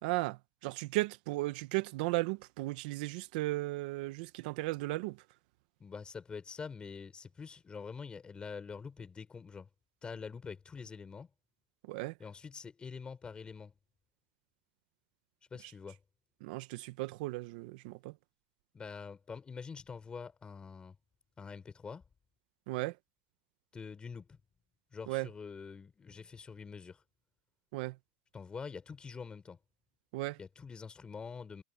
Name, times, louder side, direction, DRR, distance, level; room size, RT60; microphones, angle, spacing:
voice 1, 0.0-5.2 11.9-12.1 16.4-18.1 22.7-23.0 25.1-25.3 27.7-28.0 30.1-30.4, right 20 dB, 70° right, 1.0 m, -35 dB
voice 2, 5.8-9.7 10.0-11.3 12.2-13.7 15.5-16.0 18.7-21.0 21.4-22.0 23.7-24.4 24.9-27.0 28.3-29.6 30.4-31.6, left 5 dB, 20° left, 5.0 m, -45 dB
supercardioid pair, 130°, 5 cm